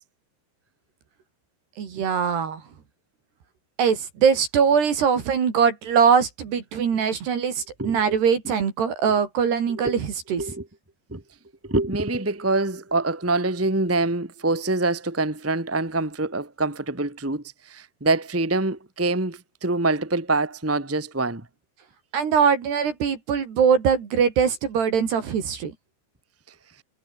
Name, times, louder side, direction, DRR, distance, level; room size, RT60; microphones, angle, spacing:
voice 1, 1.8-2.6 3.8-10.4 22.1-25.7, right 7 dB, 60° right, 5.2 m, -22 dB
voice 2, 7.8-8.2 9.8-9.9 10.4-10.6 11.1-11.2 11.6-21.4, right 2 dB, 5° right, 1.4 m, -25 dB
omnidirectional pair, 5.7 m